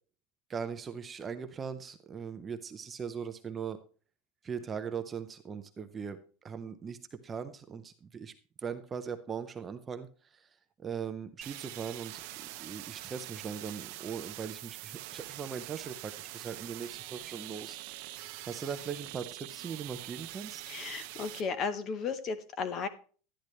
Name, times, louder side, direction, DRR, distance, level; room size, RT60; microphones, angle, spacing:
voice 1, 0.5-3.8 4.4-8.3 8.6-17.8 18.5-20.6, right 6 dB, 15° right, 9 dB, 0.6 m, -40 dB
sound 1, 11.4-21.4, right 17 dB, 55° right, 0.8 m, -44 dB
voice 2, 20.7-22.9, left 5 dB, 30° left, 12 dB, 0.9 m, -34 dB
12.0 x 10.0 x 3.2 m, 0.39 s
supercardioid pair, 170°, 0 cm